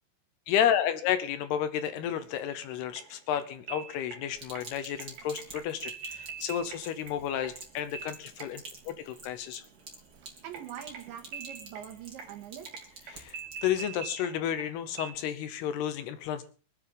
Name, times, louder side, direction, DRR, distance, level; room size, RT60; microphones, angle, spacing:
voice 1, 0.5-9.7 13.1-16.4, left 9 dB, 80° left, 12 dB, 2.4 m, -31 dB
sound 1, 2.0-15.1, right 6 dB, 50° right, 3.4 m, -45 dB
Sink (filling or washing), 4.3-13.7, right 3 dB, 30° right, 2.7 m, -49 dB
voice 2, 10.2-12.8, right 10 dB, 70° right, 4 dB, 3.9 m, -44 dB
24.5 x 10.0 x 3.9 m, 0.37 s
omnidirectional pair, 5.7 m